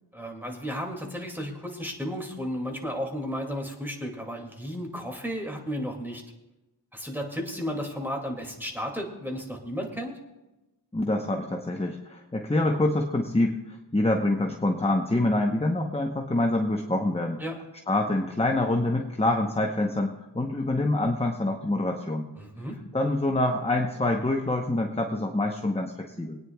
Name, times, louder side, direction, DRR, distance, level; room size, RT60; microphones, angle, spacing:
voice 1, 0.1-6.2 6.9-10.1 17.4-17.6 22.4-22.8, equal, 5° right, 1 dB, 2.2 m, -33 dB
voice 2, 10.9-17.4 17.9-22.3 22.9-26.4, left 2 dB, 15° left, 3 dB, 0.9 m, -26 dB
24.0 x 9.5 x 2.3 m, 1.0 s
wide cardioid pair, 45°, 41 cm